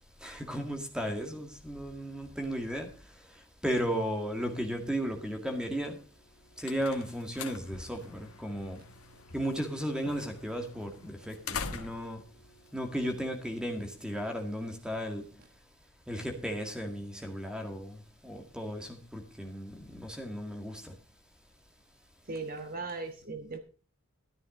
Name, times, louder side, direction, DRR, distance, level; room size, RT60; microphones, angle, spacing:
voice 1, 0.2-2.9 3.2-6.0 6.6-8.8 9.3-12.2 12.7-15.3 16.1-21.0, equal, 5° right, 2.0 m, -35 dB
sound 1, 6.2-13.6, left 5 dB, 85° left, 1.5 m, -45 dB
voice 2, 22.3-23.6, right 3 dB, 40° right, 1.3 m, -38 dB
13.5 x 11.0 x 3.8 m
head